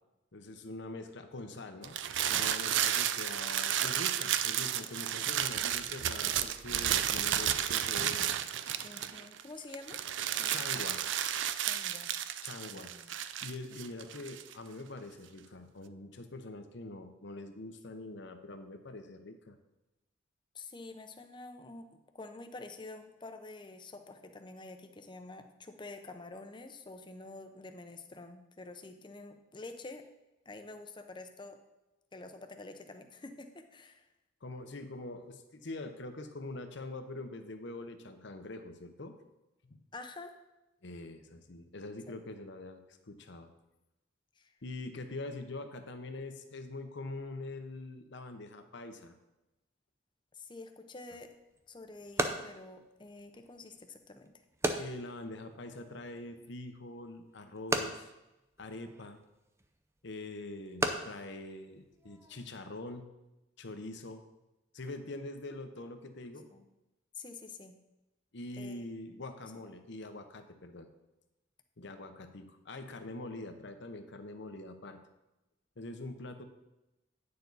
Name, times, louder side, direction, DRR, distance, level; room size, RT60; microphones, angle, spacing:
voice 1, 0.3-2.0 2.3-8.3 10.5-11.0 12.4-12.9 13.4-19.6 34.4-39.1 39.6-39.8 40.8-43.5 44.6-49.2 54.8-58.1 58.6-59.2 60.0-63.1 63.6-64.2 64.7-66.5 68.3-70.9 71.8-75.0 75.8-76.4, left 2 dB, 60° left, 7 dB, 0.9 m, -44 dB
sound 1, 1.8-9.4 9.7-14.5, right 10 dB, 65° right, 0.4 m, -32 dB
voice 2, 8.8-10.0 10.3-10.7 11.6-12.1 12.7-13.2 20.5-21.9 22.1-30.0 30.5-31.6 32.1-34.0 39.9-40.3 42.1-42.2 44.4-44.5 50.3-51.3 51.7-54.3 66.5-66.6 67.1-67.8 68.5-69.2, left 3 dB, 25° left, 6 dB, 0.7 m, -48 dB
sound 2, 51.1-62.5, right 1 dB, 15° right, 0.5 m, -39 dB
9.6 x 6.8 x 4.0 m, 0.98 s
head